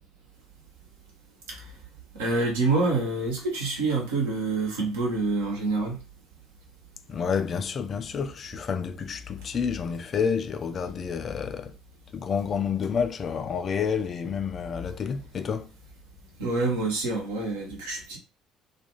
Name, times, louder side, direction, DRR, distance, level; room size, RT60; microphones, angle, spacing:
voice 1, 2.1-6.0 16.4-18.2, right 3 dB, 70° right, 0.9 m, -27 dB
voice 2, 7.1-11.7 12.1-15.7, left 6 dB, 40° left, 0.3 m, -29 dB
2.4 x 2.3 x 3.0 m
figure-of-eight pair, 55°, 0 cm